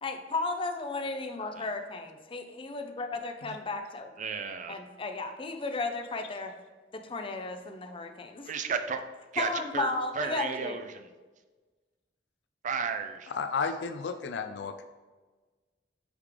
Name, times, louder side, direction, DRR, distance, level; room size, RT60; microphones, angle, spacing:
voice 1, 0.0-4.1 4.7-6.5 7.0-8.5 9.4-10.8, left 3 dB, 30° left, 5 dB, 0.5 m, -34 dB
voice 2, 4.2-4.8 8.4-9.0 9.3-11.1 12.6-13.3, right 5 dB, 45° right, 8 dB, 0.5 m, -33 dB
voice 3, 13.3-14.8, left 5 dB, 80° left, 7 dB, 0.4 m, -33 dB
8.0 x 3.6 x 3.3 m, 1.3 s
head